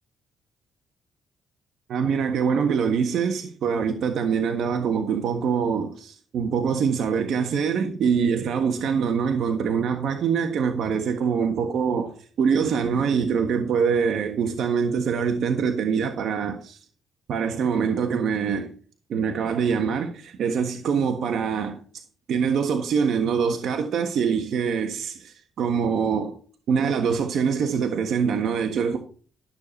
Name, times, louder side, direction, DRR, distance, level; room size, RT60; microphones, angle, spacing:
voice 1, 1.9-16.8 17.3-18.7 19.1-21.8 22.3-26.3 26.7-29.0, right 6 dB, 70° right, 1.4 m, -24 dB
13.0 x 6.9 x 4.4 m
cardioid pair, 90°, 0 cm